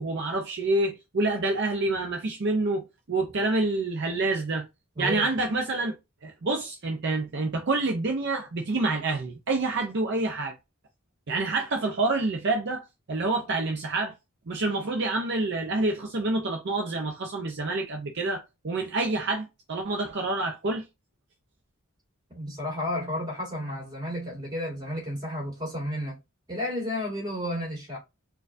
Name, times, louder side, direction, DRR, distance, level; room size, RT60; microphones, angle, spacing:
voice 1, 0.0-4.6 5.0-5.9 6.2-10.5 11.3-14.1 14.5-20.8, right 2 dB, 55° right, 0.6 m, -27 dB
voice 2, 5.0-5.3 22.3-26.2 26.5-28.0, left 1 dB, 20° right, 2.0 m, -32 dB
4.3 x 2.4 x 2.5 m
head